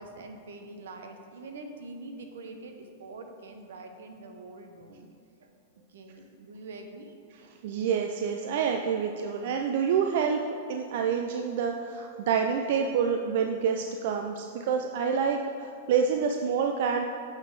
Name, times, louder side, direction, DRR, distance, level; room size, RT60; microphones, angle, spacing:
voice 1, 0.0-5.1 5.4-5.5 5.9-7.2, right 2 dB, 85° right, 5 dB, 0.8 m, -44 dB
voice 2, 7.6-10.4 10.7-17.0, right 6 dB, 60° right, 3 dB, 0.4 m, -27 dB
7.4 x 4.0 x 4.7 m, 2.3 s
hypercardioid pair, 135°, 0 cm